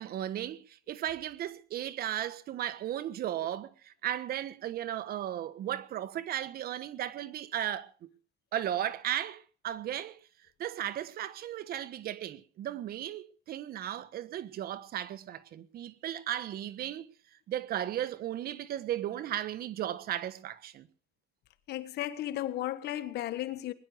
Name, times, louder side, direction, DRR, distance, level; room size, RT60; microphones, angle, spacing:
voice 1, 0.0-8.1 8.5-10.2 10.6-17.1 17.5-20.9, right 11 dB, 65° right, 1.5 m, -35 dB
voice 2, 21.7-23.7, left 13 dB, 75° left, 1.5 m, -34 dB
21.0 x 11.0 x 6.4 m
cardioid pair, 110°, 17 cm